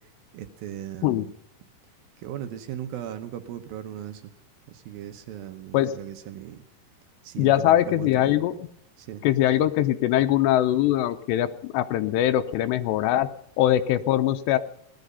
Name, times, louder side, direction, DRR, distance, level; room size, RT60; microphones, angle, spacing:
voice 1, 0.3-1.3 2.2-4.2 4.7-6.6 7.2-8.3 9.0-9.2, right 11 dB, 75° right, 8 dB, 2.3 m, -37 dB
voice 2, 7.4-8.7 9.2-13.3 13.6-14.6, left 13 dB, 80° left, 10 dB, 2.8 m, -22 dB
18.0 x 12.0 x 5.4 m, 0.70 s
omnidirectional pair, 4.9 m